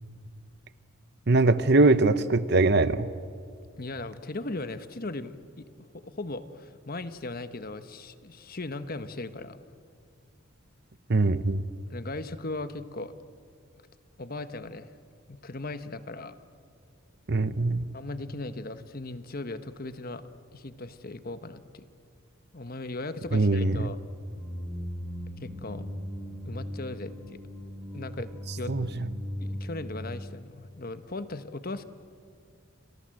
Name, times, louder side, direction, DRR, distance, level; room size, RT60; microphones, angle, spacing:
voice 1, 1.3-3.1 11.1-11.6 17.3-17.8 23.3-23.8 28.7-29.1, right 2 dB, 50° right, 14 dB, 0.9 m, -22 dB
voice 2, 3.8-5.7 5.9-9.6 11.9-13.1 14.2-14.9 15.3-16.3 17.9-20.2 20.5-21.8 22.5-24.0 25.4-25.8 26.4-27.4 27.9-28.7 29.4-31.9, left 2 dB, 45° left, 11 dB, 1.1 m, -38 dB
sound 1, 24.3-30.1, equal, 10° right, 6.7 m, -38 dB
30.0 x 25.0 x 7.8 m, 2.3 s
head